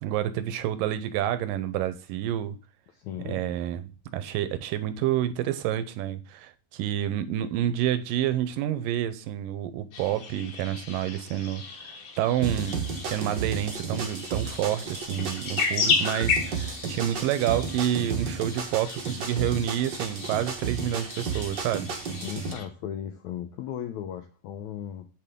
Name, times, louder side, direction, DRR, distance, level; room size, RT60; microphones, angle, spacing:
voice 1, 0.0-2.6 3.3-21.9, right 11 dB, 80° right, 2.2 m, -29 dB
voice 2, 2.9-3.4 22.2-25.1, left 10 dB, 80° left, 1.7 m, -36 dB
sound 1, 9.9-22.7, left 5 dB, 60° left, 2.8 m, -34 dB
sound 2, 12.4-22.5, right 5 dB, 60° right, 1.1 m, -33 dB
8.1 x 6.8 x 3.6 m
omnidirectional pair, 4.1 m